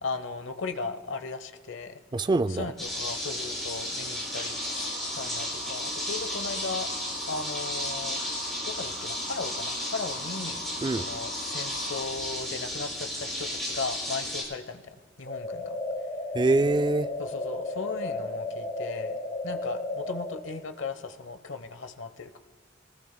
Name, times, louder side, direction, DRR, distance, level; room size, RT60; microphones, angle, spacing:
voice 1, 0.0-2.0 2.6-6.9 7.3-8.2 8.6-10.6 11.0-15.8 17.2-19.2 19.4-22.4, left 4 dB, 75° left, 1.0 m, -37 dB
voice 2, 2.1-2.7 10.8-11.1 16.3-17.1, right 2 dB, 25° right, 0.3 m, -24 dB
sound 1, 2.8-14.4, left 1 dB, ahead, 5.5 m, -34 dB
sound 2, 2.9-12.0, right 1 dB, 75° right, 4.1 m, -43 dB
sound 3, 15.3-20.3, left 2 dB, 60° left, 4.2 m, -34 dB
25.5 x 19.5 x 2.2 m
head